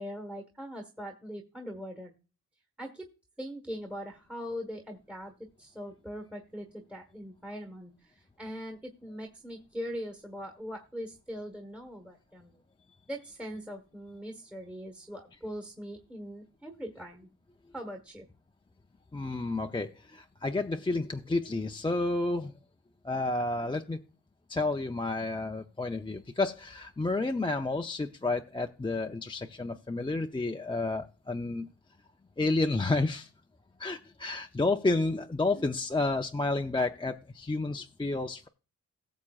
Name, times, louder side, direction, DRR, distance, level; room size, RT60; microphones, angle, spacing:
voice 1, 0.0-2.2 2.8-3.1 3.4-12.5 13.1-17.3 17.7-18.3 35.5-35.6, equal, 5° right, 3 dB, 1.4 m, -41 dB
voice 2, 19.1-22.5 23.0-24.0 24.5-31.7 32.4-33.3 33.8-38.5, left 2 dB, 15° left, 4 dB, 0.5 m, -30 dB
17.5 x 7.2 x 2.4 m, 0.33 s
cardioid pair, 85°, 35 cm